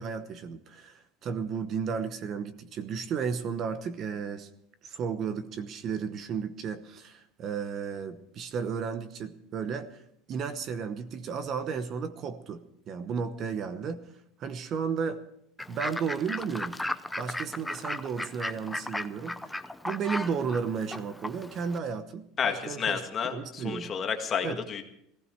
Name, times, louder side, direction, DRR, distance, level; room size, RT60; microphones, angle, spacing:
voice 1, 0.0-4.5 4.8-10.0 10.3-14.1 14.4-15.2 15.7-16.8 17.2-19.6 19.8-23.9 24.4-24.6, right 6 dB, 40° right, 12 dB, 1.0 m, -33 dB
Fowl / Bird, 15.6-21.8, left 1 dB, 5° left, 0.6 m, -36 dB
voice 2, 22.4-24.8, left 7 dB, 30° left, 4 dB, 1.8 m, -31 dB
18.0 x 15.5 x 4.5 m, 0.75 s
supercardioid pair, 140°, 0 cm